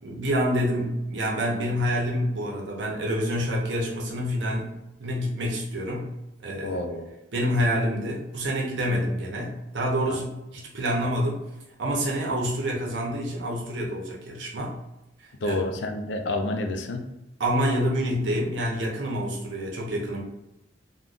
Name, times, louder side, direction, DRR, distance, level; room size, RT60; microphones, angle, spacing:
voice 1, 0.0-6.1 6.4-6.8 7.3-11.5 11.8-14.7 15.4-15.6 17.4-20.2, equal, 85° right, -1 dB, 0.7 m, -27 dB
voice 2, 6.6-7.1 10.0-10.2 15.4-17.1, left 2 dB, 85° left, 5 dB, 0.4 m, -29 dB
3.5 x 2.2 x 2.5 m, 0.93 s
head